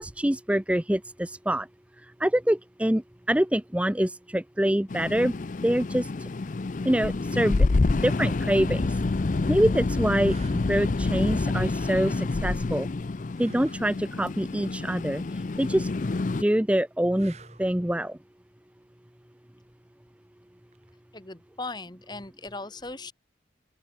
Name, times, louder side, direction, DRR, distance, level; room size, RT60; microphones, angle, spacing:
voice 1, 0.0-1.7 2.2-5.3 5.6-6.1 6.8-7.7 8.0-9.0 9.5-10.3 10.7-12.9 13.4-15.2 15.6-15.9 16.4-18.2, right 1 dB, 5° right, 0.6 m, -25 dB
sound 1, 4.9-16.4, left 3 dB, 45° left, 0.5 m, -27 dB
sound 2, 8.8-8.9 9.5-9.6 10.2-10.7 13.3-13.9 17.1-17.8 20.7-20.9, right 2 dB, 35° right, 4.7 m, -47 dB
voice 2, 21.1-23.1, left 3 dB, 25° left, 1.5 m, -38 dB
open air
head